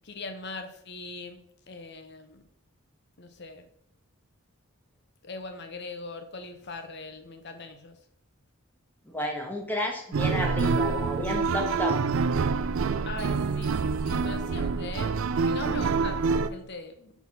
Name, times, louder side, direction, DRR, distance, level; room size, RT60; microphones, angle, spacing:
voice 1, 0.0-1.4 1.7-2.4 3.2-3.6 5.2-8.0 13.0-17.1, left 3 dB, 50° left, 7 dB, 0.9 m, -41 dB
voice 2, 9.1-12.0, left 1 dB, 10° left, 1 dB, 1.1 m, -31 dB
sound 1, 10.1-16.5, right 5 dB, 65° right, 0.4 m, -26 dB
5.6 x 4.7 x 5.6 m, 0.72 s
head